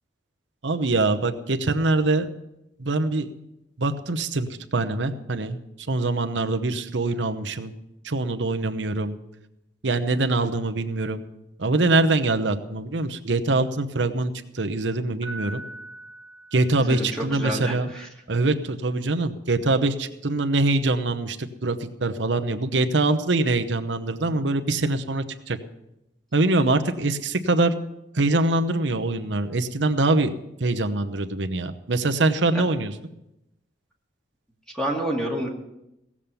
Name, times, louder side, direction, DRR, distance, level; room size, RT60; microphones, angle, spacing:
voice 1, 0.6-2.3 2.8-3.3 3.8-5.6 5.9-7.7 8.0-9.1 9.8-11.2 11.6-15.6 16.5-17.9 18.3-25.6 26.3-27.7 28.1-30.3 30.6-32.9, right 2 dB, 90° right, 8 dB, 0.9 m, -24 dB
Piano, 15.2-17.3, right 1 dB, 40° left, 6.3 m, -40 dB
voice 2, 16.8-18.1 34.7-35.5, right 1 dB, 5° left, -1 dB, 2.2 m, -28 dB
17.0 x 7.3 x 6.9 m, 0.89 s
head